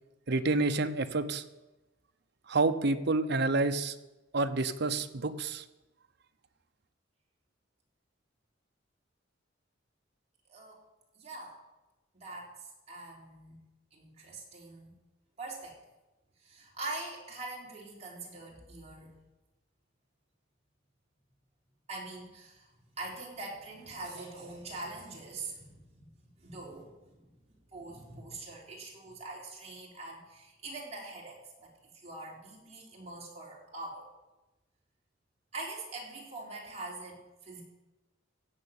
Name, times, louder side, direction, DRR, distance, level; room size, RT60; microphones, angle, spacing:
voice 1, 0.3-1.4 2.5-3.9 4.3-5.6, right 3 dB, 60° right, 9 dB, 0.8 m, -28 dB
voice 2, 10.5-10.8 11.2-11.6 12.1-13.6 13.9-15.0 15.4-15.8 16.4-19.1 21.9-22.7 23.0-26.1 26.4-27.3 27.7-31.7 31.9-34.1 35.5-37.6, right 2 dB, 35° right, -3 dB, 3.8 m, -43 dB
15.5 x 6.9 x 8.7 m, 1.1 s
head